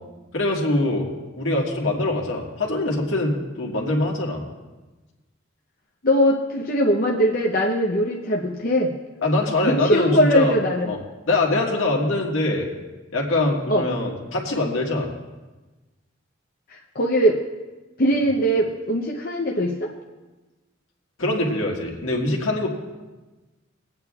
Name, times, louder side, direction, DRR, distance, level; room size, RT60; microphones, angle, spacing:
voice 1, 0.3-1.1 1.4-4.4 9.2-10.6 10.9-11.0 11.3-12.7 13.1-15.1 21.2-22.7, left 2 dB, 75° left, -1 dB, 1.7 m, -23 dB
voice 2, 6.0-8.9 9.6-10.9 13.7-13.9 16.7-17.4 18.0-19.9, equal, 50° left, -1 dB, 0.7 m, -21 dB
23.5 x 8.8 x 2.4 m, 1.2 s
head